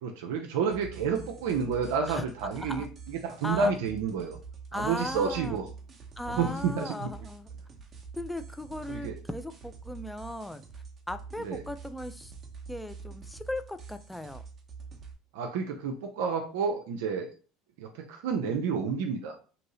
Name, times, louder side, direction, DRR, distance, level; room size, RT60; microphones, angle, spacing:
voice 1, 0.0-4.4 4.7-5.7 6.3-7.1 8.9-9.2 11.4-11.6 15.3-17.3 17.8-19.4, right 5 dB, 75° right, 3 dB, 0.5 m, -30 dB
sound 1, 0.7-15.1, right 5 dB, 35° right, 0.8 m, -46 dB
voice 2, 2.6-2.9 3.4-3.7 4.7-5.6 6.2-7.5 8.2-10.6 11.1-12.3 12.7-14.4, left 1 dB, 5° left, 9 dB, 0.4 m, -37 dB
2.8 x 2.6 x 3.0 m, 0.38 s
hypercardioid pair, 80°, 0 cm